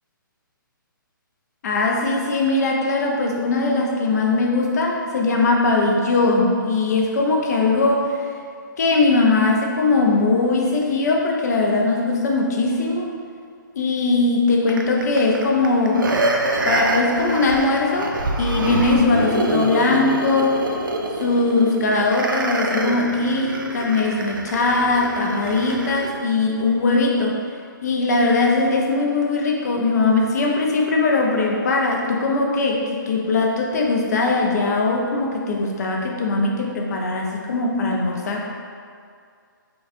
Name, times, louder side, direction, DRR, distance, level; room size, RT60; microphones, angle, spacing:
voice 1, 1.6-8.3 8.8-13.1 13.8-16.1 16.6-20.6 21.2-27.4 27.8-38.5, left 3 dB, 50° left, -1 dB, 0.5 m, -20 dB
sound 1, 14.7-26.1 26.6-26.7, right 2 dB, 70° right, 0.4 m, -26 dB
4.2 x 2.3 x 2.5 m, 2.2 s
figure-of-eight pair, 135°, 11 cm